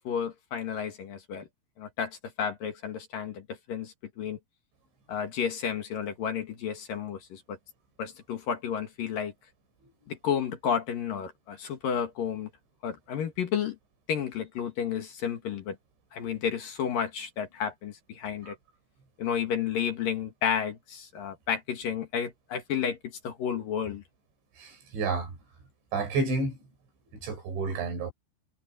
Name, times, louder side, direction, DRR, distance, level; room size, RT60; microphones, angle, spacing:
voice 1, 0.0-1.5 1.8-4.4 5.1-7.6 8.0-9.3 10.1-12.5 12.8-13.8 14.1-15.8 16.1-18.6 19.2-24.0, left 8 dB, 55° left, 3.2 m, -32 dB
voice 2, 24.6-25.4 25.9-26.6 27.1-28.1, right 3 dB, 80° right, 7.7 m, -30 dB
omnidirectional pair, 5.2 m